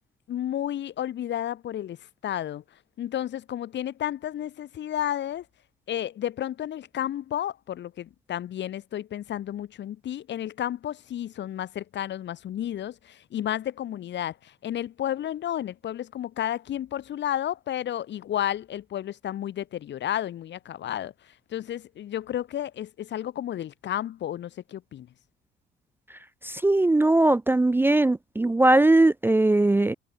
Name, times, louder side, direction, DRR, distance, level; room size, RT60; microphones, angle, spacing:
voice 1, 0.3-2.0 2.2-2.6 3.0-5.4 5.9-25.1, left 11 dB, 65° left, 1.1 m, -32 dB
voice 2, 26.4-29.9, right 2 dB, 10° right, 0.4 m, -20 dB
cardioid pair, 90°, 20 cm